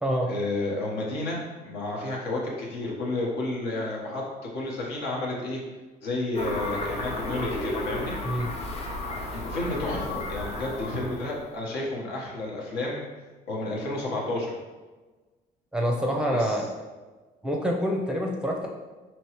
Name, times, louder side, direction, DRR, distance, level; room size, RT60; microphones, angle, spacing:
voice 1, 0.3-5.6 6.0-8.2 9.3-13.0 13.5-14.5 16.3-16.7, left 2 dB, 75° left, -3 dB, 1.2 m, -31 dB
sound 1, 6.3-11.5, left 2 dB, 40° left, 0.8 m, -33 dB
voice 2, 15.7-16.6 17.4-18.7, equal, 5° right, -1 dB, 0.6 m, -26 dB
4.4 x 3.1 x 3.0 m, 1.3 s
cardioid pair, 110°, 17 cm